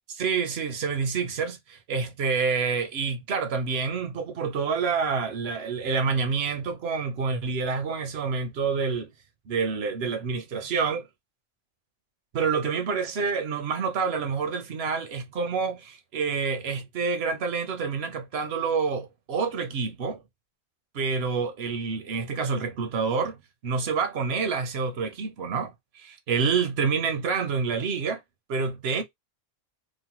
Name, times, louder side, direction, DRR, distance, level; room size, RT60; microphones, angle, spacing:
voice 1, 0.2-9.1 9.5-11.1 12.3-20.2 20.9-28.2 28.5-29.0, right 5 dB, 80° right, 0.9 m, -28 dB
3.0 x 2.2 x 2.9 m
omnidirectional pair, 1.0 m